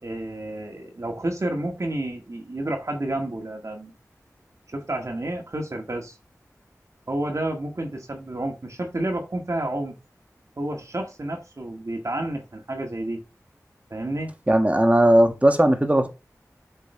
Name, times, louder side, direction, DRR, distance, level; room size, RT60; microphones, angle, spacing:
voice 1, 0.0-3.9 4.7-6.2 7.1-10.0 10.6-13.2 13.9-14.3, right 1 dB, 55° right, 1.7 m, -30 dB
voice 2, 14.5-16.1, right 1 dB, 20° right, 1.7 m, -17 dB
8.1 x 5.3 x 3.3 m
wide cardioid pair, 45°, 6 cm